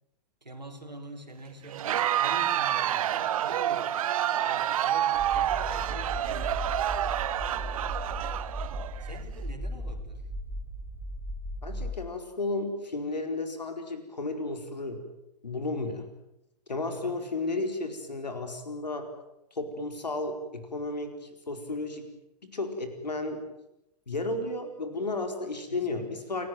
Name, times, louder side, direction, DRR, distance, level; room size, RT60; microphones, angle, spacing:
voice 1, 0.4-6.7 7.4-8.1 9.0-10.3 16.9-17.2 25.7-26.2, right 1 dB, 90° right, 1 dB, 4.0 m, -45 dB
Crowd, 1.7-9.2, right 11 dB, 55° right, 1.1 m, -28 dB
sound 1, 5.1-11.9, equal, 25° right, 3.6 m, -36 dB
voice 2, 11.6-15.0 15.4-16.0 16.7-19.1 19.5-22.1 22.4-23.4 24.1-26.5, left 2 dB, 80° left, 6 dB, 4.6 m, -33 dB
29.0 x 19.0 x 9.2 m, 0.87 s
figure-of-eight pair, 110°, 21 cm